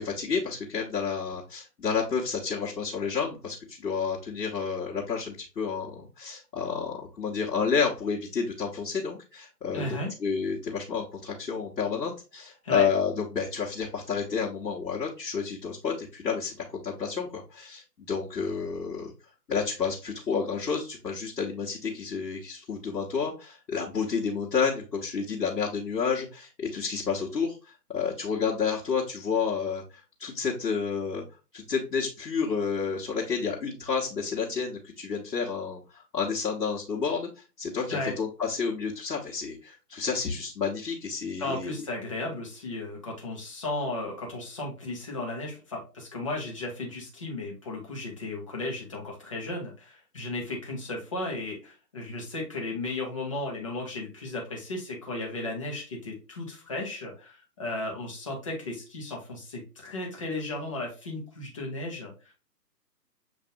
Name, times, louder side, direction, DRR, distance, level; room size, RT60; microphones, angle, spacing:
voice 1, 0.0-19.1 19.5-27.5 27.9-29.8 30.2-31.2 31.5-37.3 37.6-41.8, left 5 dB, 85° left, -4 dB, 1.5 m, -30 dB
voice 2, 9.7-10.1 12.6-12.9 37.9-38.1 41.4-62.1, left 2 dB, 20° left, -1 dB, 0.8 m, -35 dB
7.4 x 2.6 x 2.6 m, 0.32 s
hypercardioid pair, 160°, 50 cm